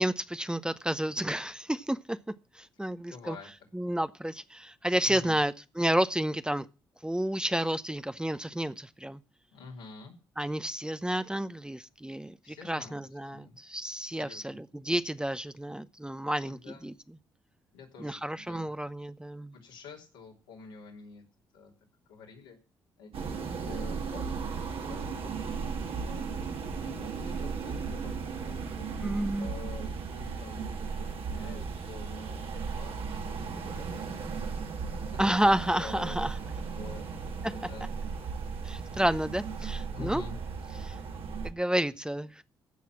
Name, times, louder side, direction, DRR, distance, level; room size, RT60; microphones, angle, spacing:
voice 1, 0.0-2.2 2.5-3.4 3.7-6.7 7.0-9.2 10.4-16.9 18.0-19.5 29.0-29.5 35.2-36.3 37.4-37.5 38.6-40.2 40.8-41.0 41.4-42.4, right 1 dB, 10° right, 0.8 m, -30 dB
voice 2, 3.1-3.5 3.8-3.9 5.1-5.4 9.5-10.1 12.4-13.0 13.3-13.6 14.1-14.6 16.5-16.8 17.7-18.7 19.5-21.2 21.5-21.7 22.1-22.6 23.0-25.6 26.0-26.5 26.8-28.9 29.4-34.6 35.1-35.2 35.5-36.2 36.8-37.1 37.5-37.9 39.9-40.4, left 5 dB, 85° left, 3.4 m, -48 dB
sound 1, 23.1-41.5, right 5 dB, 60° right, 1.8 m, -36 dB
15.5 x 6.0 x 7.3 m
hypercardioid pair, 45°, 11 cm